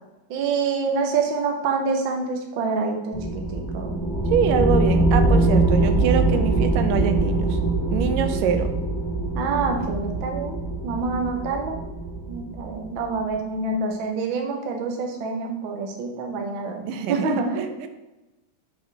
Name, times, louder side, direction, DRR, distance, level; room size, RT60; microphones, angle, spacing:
voice 1, 0.3-4.0 9.3-10.6 10.8-11.8 12.3-17.7, right 4 dB, 65° right, 2 dB, 1.2 m, -27 dB
sound 1, 3.1-13.1, right 2 dB, 15° left, 0.9 m, -23 dB
voice 2, 4.3-7.6 7.9-8.7 16.9-17.9, right 7 dB, 90° right, 8 dB, 2.3 m, -24 dB
7.7 x 4.7 x 4.7 m, 1.0 s
omnidirectional pair, 3.7 m